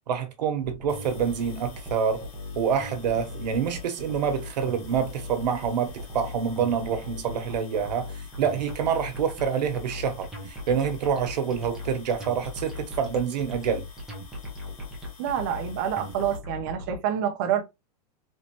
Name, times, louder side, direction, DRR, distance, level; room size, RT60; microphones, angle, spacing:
voice 1, 0.1-2.3 2.5-13.9, right 7 dB, 85° right, 1.2 m, -27 dB
sound 1, 0.6-17.0, left 2 dB, ahead, 0.9 m, -38 dB
sound 2, 0.9-16.4, left 4 dB, 60° left, 2.2 m, -52 dB
voice 2, 15.2-17.6, right 9 dB, 30° right, 0.5 m, -27 dB
4.3 x 3.1 x 3.0 m
supercardioid pair, 180°, 21 cm